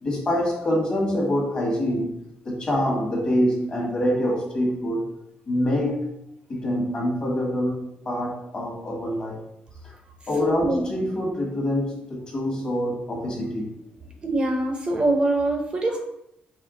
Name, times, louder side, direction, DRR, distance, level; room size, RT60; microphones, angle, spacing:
voice 1, 0.0-5.1 5.5-6.0 6.5-9.5 9.8-9.9 10.3-13.7 15.9-16.0, equal, 30° left, -1 dB, 1.3 m, -25 dB
voice 2, 10.4-10.9 14.2-16.0, right 2 dB, 30° right, 3 dB, 0.6 m, -24 dB
4.3 x 3.3 x 3.7 m, 0.80 s
wide cardioid pair, 180°, 3 cm